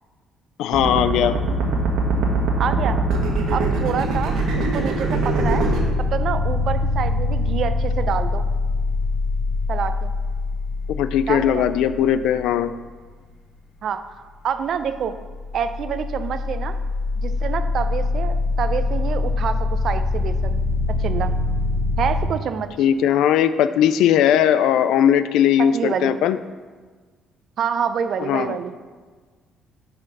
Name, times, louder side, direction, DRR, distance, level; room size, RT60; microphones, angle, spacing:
voice 1, 0.6-1.4 10.9-12.7 22.8-26.4 28.2-28.6, left 9 dB, 80° left, 13 dB, 0.3 m, -19 dB
sound 1, 0.7-5.8, right 2 dB, 75° right, 1.3 m, -22 dB
voice 2, 2.6-3.0 3.5-5.7 6.1-8.5 9.7-10.1 11.3-11.6 13.8-14.0 14.4-15.2 15.5-16.8 17.2-20.6 21.0-21.3 22.0-22.7 25.6-26.1 27.6-28.7, right 7 dB, 60° right, 10 dB, 0.5 m, -27 dB
sound 2, 5.4-12.9 14.8-22.3, left 3 dB, 55° left, 1.6 m, -24 dB
6.4 x 4.3 x 6.0 m, 1.4 s
cardioid pair, 95°, 0 cm